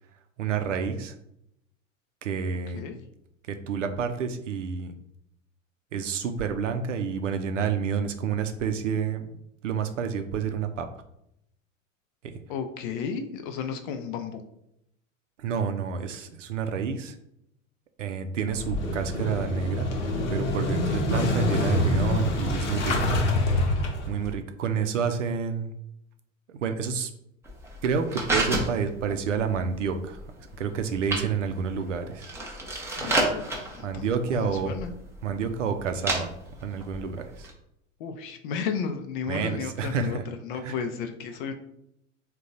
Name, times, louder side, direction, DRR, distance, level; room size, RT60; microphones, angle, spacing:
voice 1, 0.4-1.1 2.2-3.0 3.5-4.9 5.9-9.3 9.6-10.9 12.2-12.4 15.4-17.1 18.0-19.9 20.3-22.9 24.1-25.7 26.5-27.1 27.8-30.2 30.6-32.3 33.8-34.7 35.2-36.3 36.6-37.5 39.3-40.2 40.6-40.7, right 6 dB, 70° right, 7 dB, 0.6 m, -29 dB
voice 2, 12.5-14.4 33.0-34.1 34.3-34.9 38.0-41.5, left 6 dB, 40° left, 7 dB, 0.5 m, -33 dB
Motorcycle / Engine starting, 18.5-24.3, left 1 dB, 65° left, 0.9 m, -26 dB
sound 1, 27.4-37.5, right 1 dB, 5° right, 0.7 m, -32 dB
3.7 x 2.3 x 3.9 m, 0.77 s
figure-of-eight pair, 80°, 39 cm